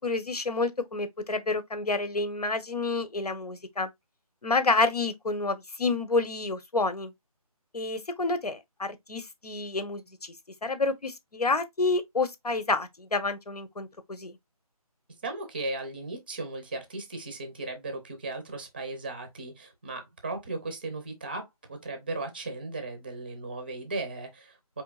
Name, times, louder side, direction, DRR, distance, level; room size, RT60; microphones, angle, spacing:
voice 1, 0.0-3.9 4.4-7.1 7.7-10.3 10.6-14.4, left 3 dB, 85° left, 1.1 m, -29 dB
voice 2, 15.2-24.8, right 2 dB, 15° right, 0.6 m, -36 dB
4.5 x 3.5 x 2.3 m
figure-of-eight pair, 165°, 19 cm